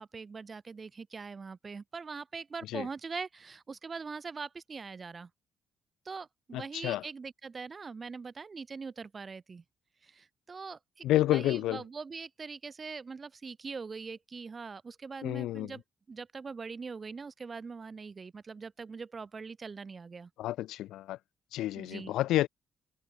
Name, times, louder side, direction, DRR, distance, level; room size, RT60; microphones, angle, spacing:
voice 1, 0.0-5.3 6.0-9.6 10.0-15.8 16.1-20.3 21.7-22.1, right 5 dB, 35° right, 0.9 m, -42 dB
voice 2, 6.5-7.0 11.0-11.8 15.2-15.7 20.4-21.2 21.5-22.5, left 14 dB, 85° left, 0.6 m, -29 dB
cardioid pair, 90°, 0 cm